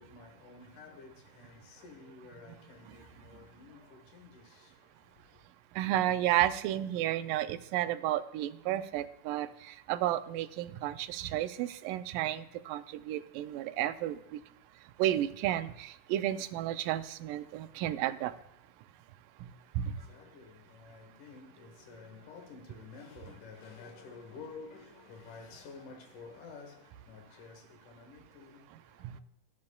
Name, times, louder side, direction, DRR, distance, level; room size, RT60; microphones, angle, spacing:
voice 1, 0.0-5.4 19.6-29.2, left 4 dB, 70° left, 2.7 m, -51 dB
voice 2, 5.8-14.2 15.0-18.3 19.8-19.9 29.0-29.2, right 13 dB, 90° right, 2.2 m, -32 dB
16.0 x 10.5 x 2.3 m
omnidirectional pair, 3.8 m